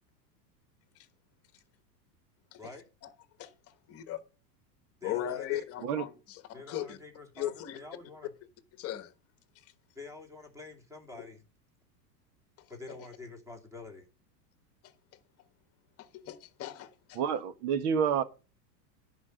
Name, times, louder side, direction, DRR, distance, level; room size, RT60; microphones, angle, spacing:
voice 1, 3.9-4.2 5.0-7.0 7.3-7.8 8.8-9.1 12.9-13.0 16.0-17.2, left 12 dB, 30° left, 1.3 m, -37 dB
voice 2, 5.0-5.6 6.5-8.3 9.9-11.4 12.7-14.1, left 3 dB, 5° right, 2.6 m, -47 dB
voice 3, 17.1-18.2, right 7 dB, 60° right, 1.6 m, -28 dB
11.0 x 4.8 x 7.8 m
supercardioid pair, 140°, 49 cm